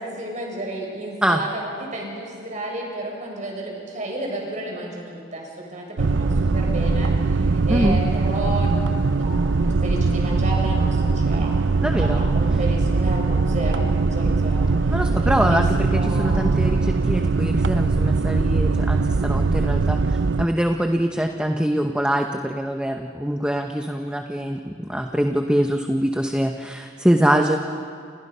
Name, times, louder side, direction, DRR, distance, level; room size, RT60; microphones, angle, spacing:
voice 1, 0.0-11.5 11.9-15.6 15.9-16.5 17.0-17.2 27.2-27.6, right 1 dB, 40° right, -1 dB, 7.3 m, -32 dB
sound 1, 6.0-20.5, right 3 dB, 80° right, 0.6 m, -21 dB
voice 2, 7.7-8.0 11.8-12.2 14.9-27.6, equal, 5° right, 4 dB, 0.9 m, -24 dB
29.5 x 29.5 x 5.6 m, 2.3 s
head